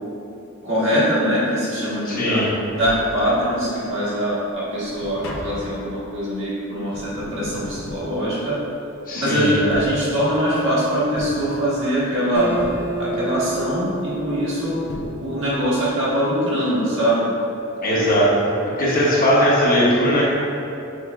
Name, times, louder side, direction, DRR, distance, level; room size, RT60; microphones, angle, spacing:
voice 1, 0.6-2.4 2.7-8.6 9.2-12.5 13.0-14.8 15.2-17.3, equal, 60° right, -9 dB, 1.5 m, -22 dB
voice 2, 2.0-2.5 9.1-9.5 17.8-18.3 18.8-20.2, equal, 40° left, -6 dB, 1.0 m, -18 dB
Tap, 2.8-3.8 4.2-8.9 9.5-10.6 11.2-12.1 12.6-13.4 14.5-14.6 14.9-15.7 16.0-16.1, left 1 dB, 65° left, 0.5 m, -36 dB
Acoustic guitar, 12.3-15.8, right 2 dB, 10° right, 0.5 m, -31 dB
6.2 x 3.4 x 2.4 m, 2.7 s
head